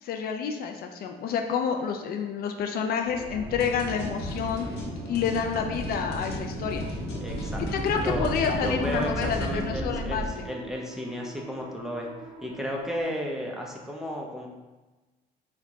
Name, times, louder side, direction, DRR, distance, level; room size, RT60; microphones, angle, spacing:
voice 1, 0.0-4.7 5.1-6.8 7.6-10.2, left 6 dB, 65° left, 5 dB, 0.4 m, -29 dB
sound 1, 3.0-10.3, right 1 dB, 50° right, 0.9 m, -35 dB
sound 2, 3.1-13.0, right 2 dB, 85° right, 0.7 m, -46 dB
sound 3, 3.6-9.6, left 2 dB, 85° left, 0.8 m, -38 dB
voice 2, 7.2-7.6 8.0-8.3 8.6-12.1 12.4-14.5, equal, 5° right, -1 dB, 0.7 m, -33 dB
4.5 x 2.3 x 3.8 m, 1.2 s
cardioid pair, 110°, 17 cm